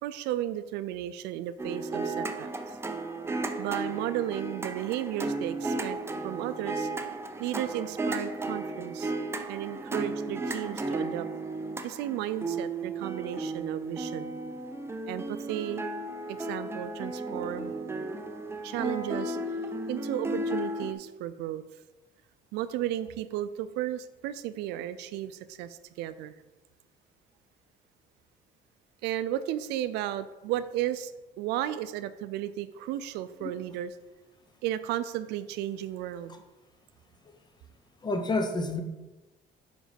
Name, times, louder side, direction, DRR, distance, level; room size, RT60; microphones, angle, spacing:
voice 1, 0.0-2.8 3.6-6.0 6.2-6.9 7.4-9.1 9.5-11.3 11.8-14.3 15.1-15.8 16.3-17.7 18.6-19.4 19.9-21.6 22.5-26.3 29.0-31.1 31.4-33.9 34.6-36.4, right 12 dB, 90° right, 13 dB, 0.4 m, -34 dB
sound 1, 1.6-20.9, right 2 dB, 15° right, 0.5 m, -34 dB
voice 2, 38.0-38.8, left 2 dB, 25° left, 6 dB, 0.8 m, -29 dB
5.1 x 4.8 x 5.1 m, 1.1 s
cardioid pair, 110°, 17 cm